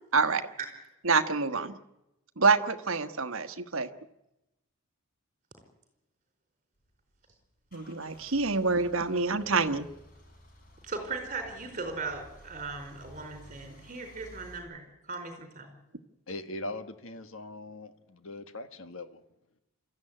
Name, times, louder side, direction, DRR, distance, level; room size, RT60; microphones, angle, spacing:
voice 1, 1.0-1.8 2.4-3.9 7.7-9.9, right 4 dB, 65° right, 9 dB, 1.3 m, -26 dB
Car / Engine starting / Idling, 6.8-14.6, equal, 40° left, 4.7 m, -54 dB
voice 2, 10.8-15.8, right 4 dB, 35° right, 6 dB, 4.7 m, -38 dB
voice 3, 16.3-19.2, left 2 dB, 65° left, 9 dB, 1.6 m, -40 dB
25.5 x 14.5 x 9.9 m, 0.94 s
head